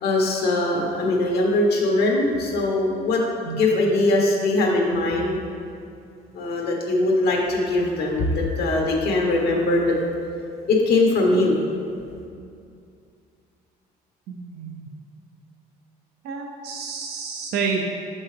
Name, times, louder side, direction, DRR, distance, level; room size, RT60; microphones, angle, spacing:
voice 1, 0.0-3.2 3.5-5.4 6.3-9.9 10.7-11.6, left 2 dB, 70° left, -1 dB, 1.2 m, -21 dB
voice 2, 14.3-14.9 16.2-17.8, right 5 dB, 75° right, 1 dB, 0.6 m, -29 dB
6.6 x 5.3 x 3.3 m, 2.4 s
cardioid pair, 110°, 17 cm